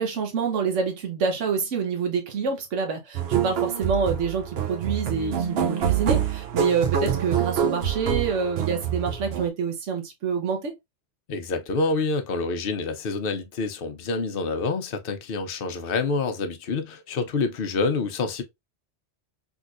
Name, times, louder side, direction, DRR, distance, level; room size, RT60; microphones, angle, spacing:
voice 1, 0.0-10.7, right 5 dB, 85° right, 1.2 m, -27 dB
sound 1, 3.1-9.5, right 8 dB, 60° right, 0.9 m, -26 dB
voice 2, 11.3-18.4, left 3 dB, 55° left, 0.8 m, -27 dB
3.6 x 3.0 x 2.4 m
omnidirectional pair, 1.2 m